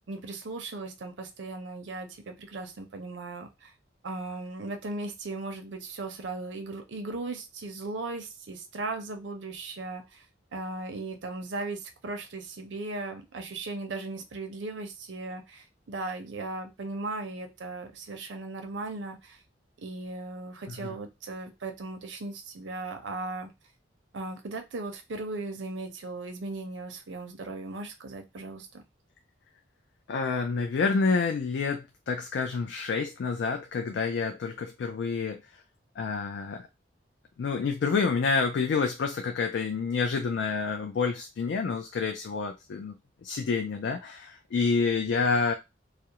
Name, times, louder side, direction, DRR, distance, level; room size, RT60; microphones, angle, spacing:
voice 1, 0.1-3.7 4.0-10.2 10.5-19.4 19.8-23.5 24.1-28.8, right 3 dB, 85° right, 5 dB, 0.6 m, -37 dB
voice 2, 30.1-35.4 36.0-36.7 37.4-45.5, left 4 dB, 70° left, 3 dB, 0.3 m, -28 dB
2.4 x 2.0 x 2.8 m, 0.23 s
head